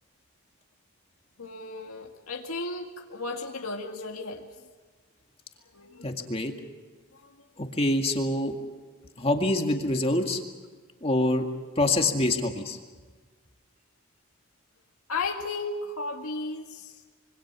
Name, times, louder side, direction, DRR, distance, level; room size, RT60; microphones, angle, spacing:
voice 1, 1.4-4.5 5.7-6.1 7.1-7.3 15.1-17.0, left 3 dB, 75° left, 1 dB, 2.0 m, -34 dB
voice 2, 6.0-6.5 7.6-8.6 9.2-10.4 11.0-11.5 11.8-12.8, left 1 dB, 25° left, 3 dB, 2.1 m, -25 dB
26.0 x 24.0 x 6.2 m, 1.4 s
head